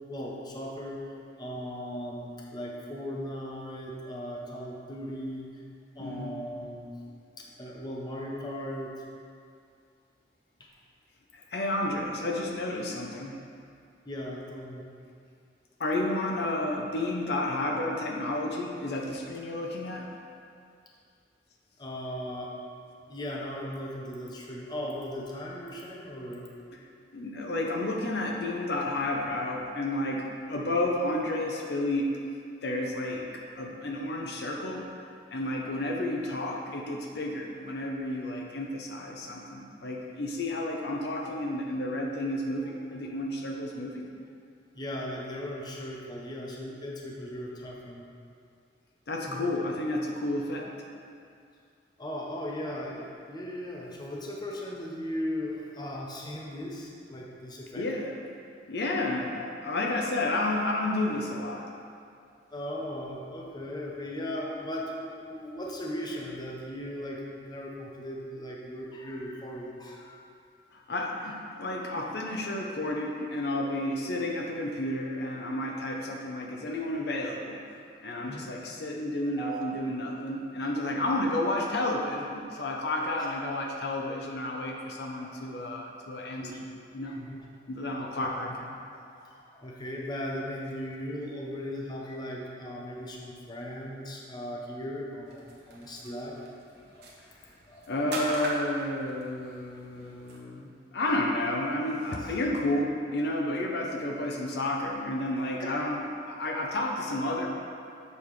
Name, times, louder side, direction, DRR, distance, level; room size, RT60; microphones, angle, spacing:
voice 1, 0.1-1.0 1.4-5.5 6.0-6.9 7.4-8.9 10.6-10.7 14.1-14.9 21.8-22.5 23.1-26.5 44.7-48.0 49.3-49.5 52.0-57.9 58.9-59.0 62.5-70.2 71.2-71.3 71.8-71.9 78.2-78.5 79.4-79.7 80.6-80.8 85.3-85.4 86.4-86.6 87.1-87.4 88.0-88.3 89.1-96.4 96.9-97.1 97.7-97.9 105.6-105.7, equal, 25° left, -2 dB, 0.7 m, -38 dB
voice 2, 6.0-6.4 11.3-13.4 15.8-20.1 27.1-32.2 32.6-34.9 35.3-44.1 49.1-50.7 57.8-58.2 58.7-61.7 70.7-77.6 78.0-86.7 86.9-87.2 87.7-88.8 97.9-107.5, left 1 dB, 60° left, 0 dB, 0.6 m, -31 dB
sound 1, 95.3-100.4, right 2 dB, 60° right, 1.0 m, -40 dB
6.8 x 5.3 x 3.2 m, 2.3 s
head